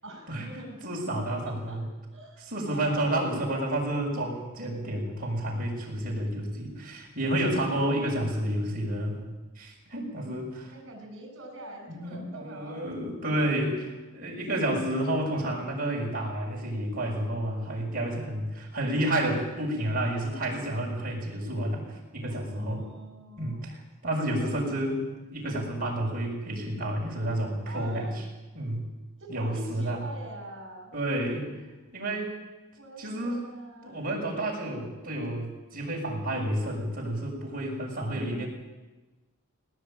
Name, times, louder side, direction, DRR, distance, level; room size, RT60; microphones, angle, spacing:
voice 1, 0.0-0.8 1.3-1.8 2.1-4.0 10.2-12.8 22.3-23.7 24.3-24.6 27.6-28.2 29.2-30.9 32.8-34.0 38.0-38.5, right 1 dB, 55° right, 4 dB, 7.1 m, -45 dB
voice 2, 0.8-1.9 2.5-9.3 9.6-10.7 11.9-22.8 23.4-28.1 28.5-28.8 29.3-30.0 30.9-31.5 31.9-32.3 33.0-33.5 33.8-38.5, right 1 dB, 40° right, -2 dB, 6.7 m, -30 dB
19.5 x 18.5 x 9.0 m, 1.2 s
head